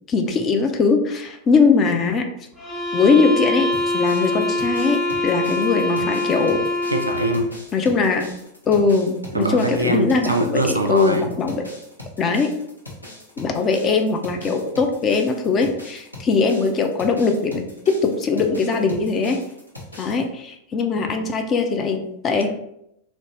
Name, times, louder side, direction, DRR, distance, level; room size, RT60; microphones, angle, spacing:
voice 1, 0.1-2.2 2.9-3.7 3.9-6.6 7.7-8.3 8.7-11.6 12.2-12.5 13.4-19.4 20.0-22.5, left 4 dB, 30° left, 5 dB, 0.4 m, -20 dB
sound 1, 2.6-7.5, left 2 dB, 5° left, 1.4 m, -24 dB
sound 2, 3.7-20.2, left 1 dB, 85° left, 0.6 m, -41 dB
voice 2, 6.9-7.5 9.3-11.3, right 1 dB, 80° right, 5 dB, 0.3 m, -22 dB
2.6 x 2.0 x 3.1 m, 0.78 s
figure-of-eight pair, 90°, 0 cm